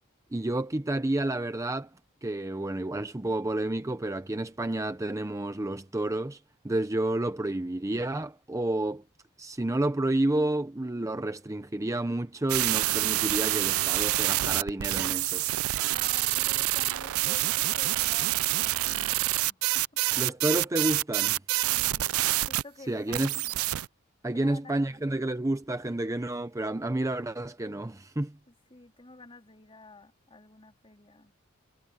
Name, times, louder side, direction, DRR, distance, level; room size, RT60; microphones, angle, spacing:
voice 1, 0.3-1.9 2.2-9.0 9.4-15.4 20.2-21.4 22.9-23.3 24.2-28.4, right 1 dB, 15° right, 0.6 m, -30 dB
sound 1, 12.5-22.6 23.1-23.9, right 17 dB, 85° right, 0.4 m, -27 dB
voice 2, 15.9-19.8 21.7-23.6 24.3-25.3 28.5-31.3, left 2 dB, 25° left, 3.5 m, -50 dB
head